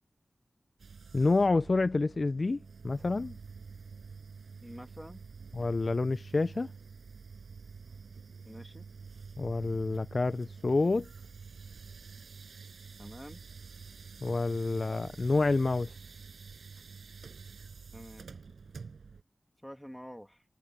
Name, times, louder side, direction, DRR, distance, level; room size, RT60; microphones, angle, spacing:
sound 1, 0.8-19.2, right 5 dB, 85° right, 6.0 m, -48 dB
voice 1, 1.1-3.4 5.5-6.7 9.4-11.1 14.2-15.9, left 3 dB, 45° left, 0.3 m, -28 dB
voice 2, 4.6-5.2 8.4-8.9 13.0-13.4 17.9-18.3 19.6-20.4, equal, ahead, 2.5 m, -47 dB
wide cardioid pair, 100°, 0 cm